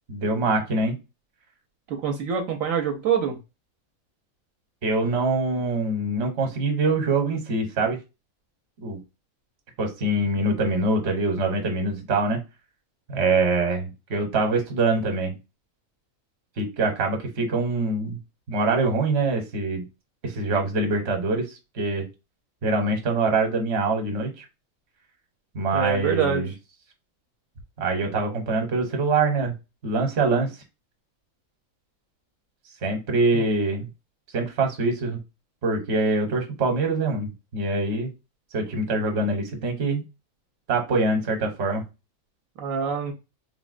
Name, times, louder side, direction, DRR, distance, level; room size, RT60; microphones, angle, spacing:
voice 1, 0.1-0.9 4.8-8.0 8.8-9.0 9.8-12.4 13.1-15.3 16.6-18.2 18.5-19.8 20.2-22.1 22.6-24.4 25.5-26.5 27.8-29.5 29.8-30.5 32.8-33.9 34.3-35.2 35.6-38.1 38.5-40.0 40.7-41.8, right 3 dB, 55° right, 3 dB, 1.0 m, -24 dB
voice 2, 1.9-3.4 25.7-26.4 33.3-33.4 42.6-43.1, right 7 dB, 75° right, 2 dB, 1.0 m, -25 dB
3.5 x 2.1 x 2.4 m, 0.27 s
omnidirectional pair, 1.4 m